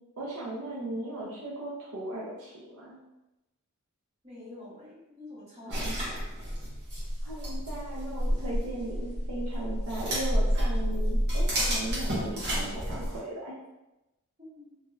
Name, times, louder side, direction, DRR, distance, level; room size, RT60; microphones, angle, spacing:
voice 1, 0.2-3.0 5.7-6.1 7.2-13.5, right 1 dB, 80° right, -5 dB, 0.6 m, -37 dB
voice 2, 4.2-6.2 14.4-14.8, left 2 dB, 30° right, -11 dB, 1.4 m, -47 dB
sound 1, 5.7-13.2, equal, 45° right, 1.0 m, -30 dB
3.0 x 2.7 x 2.4 m, 0.97 s
head